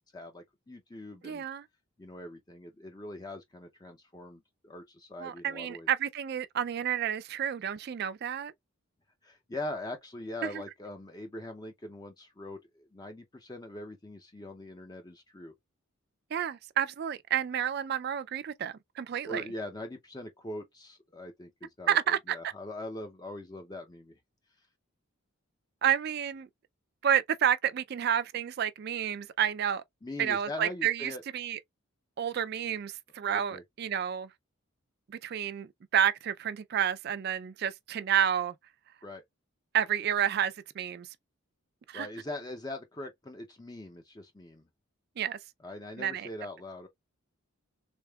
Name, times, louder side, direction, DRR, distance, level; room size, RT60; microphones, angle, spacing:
voice 1, 0.1-1.5 2.0-5.9 9.2-15.5 19.2-24.2 30.0-31.2 33.3-33.6 39.0-39.2 41.9-44.7 45.6-46.9, left 1 dB, 20° left, 0.5 m, -42 dB
voice 2, 1.2-1.6 5.2-8.5 10.4-10.5 16.3-19.4 21.9-22.4 25.8-26.5 27.0-29.8 30.2-31.6 32.2-34.3 35.1-38.5 39.7-41.1 41.9-42.1 45.2-45.4 46.0-46.3, right 9 dB, 45° right, 0.3 m, -30 dB
3.5 x 3.4 x 2.2 m
head